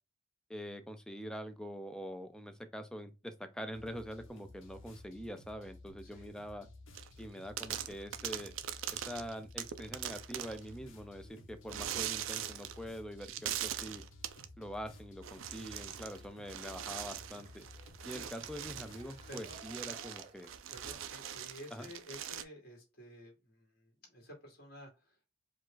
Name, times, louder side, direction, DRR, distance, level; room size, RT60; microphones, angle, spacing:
voice 1, 0.5-6.7 7.2-8.5 8.9-14.0 14.6-17.7 18.0-20.5 21.7-21.9, equal, 5° left, 0.5 m, -44 dB
sound 1, 3.7-19.7, left 2 dB, 80° left, 1.1 m, -55 dB
voice 2, 6.0-6.3 17.8-18.2 18.6-18.7 19.3-19.6 20.7-25.3, equal, 50° left, 2.3 m, -52 dB
sound 2, 6.9-7.2 7.6-10.7 11.7-12.8 13.2-14.5 15.2-16.2 16.5-22.4, right 10 dB, 85° right, 0.5 m, -41 dB
Cheering, 14.8-21.8, right 2 dB, 30° right, 0.8 m, -61 dB
5.0 x 2.4 x 3.8 m
head